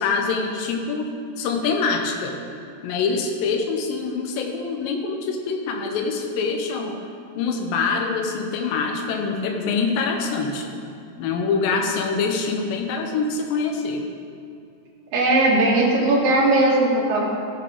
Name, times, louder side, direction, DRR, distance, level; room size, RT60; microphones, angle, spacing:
voice 1, 0.0-2.4 2.8-7.0 7.4-10.7 11.2-14.1, left 4 dB, 90° left, 3 dB, 2.5 m, -25 dB
voice 2, 15.1-17.3, right 2 dB, 50° right, -4 dB, 2.2 m, -18 dB
14.5 x 7.1 x 3.5 m, 2.4 s
omnidirectional pair, 4.0 m